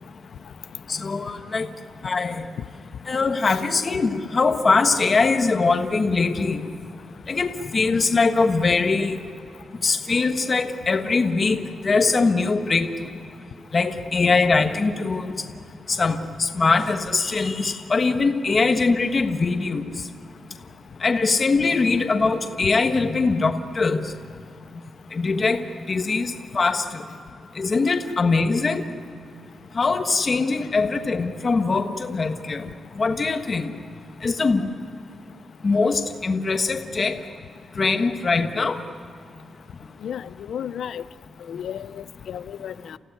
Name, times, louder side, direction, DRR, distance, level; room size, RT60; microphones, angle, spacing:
voice 1, 0.9-1.7 2.0-2.5 3.1-6.7 7.3-9.2 9.8-12.9 13.7-15.4 15.9-19.8 21.0-24.1 25.1-27.0 27.6-28.8 29.7-32.6 32.9-33.7 34.2-34.6 35.6-37.2 37.8-38.8, left 4 dB, 30° left, 6 dB, 1.4 m, -22 dB
voice 2, 40.0-41.0 41.5-43.0, left 9 dB, 75° left, 16 dB, 0.6 m, -33 dB
29.5 x 15.5 x 9.6 m, 2.5 s
wide cardioid pair, 165°, 0 cm